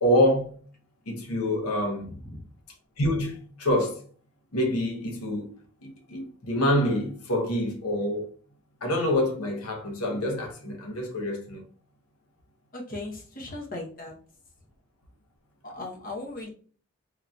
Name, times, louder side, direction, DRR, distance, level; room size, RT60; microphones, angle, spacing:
voice 1, 0.0-0.6 1.1-2.1 3.0-4.0 4.5-5.5 5.8-8.3 8.8-11.6, left 1 dB, 80° left, 0.9 m, -26 dB
voice 2, 2.0-2.4 12.7-14.1 15.6-16.5, left 2 dB, 40° left, 0.9 m, -37 dB
3.7 x 2.7 x 2.3 m
head